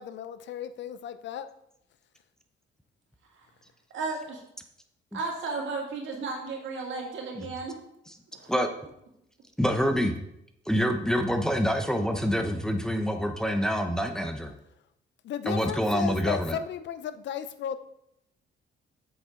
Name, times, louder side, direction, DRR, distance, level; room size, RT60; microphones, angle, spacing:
voice 1, 0.0-1.5 15.2-17.8, left 9 dB, 65° left, 12 dB, 0.6 m, -34 dB
voice 2, 3.9-4.4 5.1-7.8 8.3-8.5, right 3 dB, 75° right, 0 dB, 2.2 m, -34 dB
voice 3, 9.6-10.1 10.7-14.5 15.5-16.6, equal, 5° left, 5 dB, 0.8 m, -26 dB
7.7 x 6.6 x 3.7 m, 0.79 s
cardioid pair, 90°, 20 cm